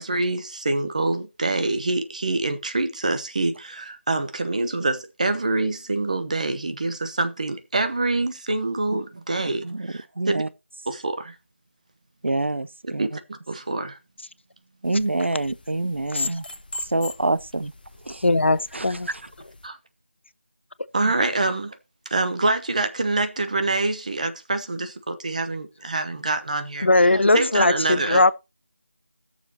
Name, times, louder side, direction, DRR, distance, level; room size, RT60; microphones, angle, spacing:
voice 1, 0.0-10.4 10.9-11.4 13.0-13.2 13.5-14.0 19.6-19.8 20.9-21.8 22.1-28.3, right 2 dB, 35° right, 1.0 m, -26 dB
voice 2, 9.4-10.5 12.2-13.2 14.8-16.5 16.8-17.7 18.0-18.2 18.7-19.2 21.0-21.1, right 2 dB, 75° right, 0.6 m, -27 dB
sound 1, 14.8-19.7, left 3 dB, 45° left, 0.9 m, -38 dB
voice 3, 18.2-19.1 26.8-28.3, left 2 dB, 75° left, 0.6 m, -19 dB
19.5 x 6.8 x 2.8 m
figure-of-eight pair, 170°, 6 cm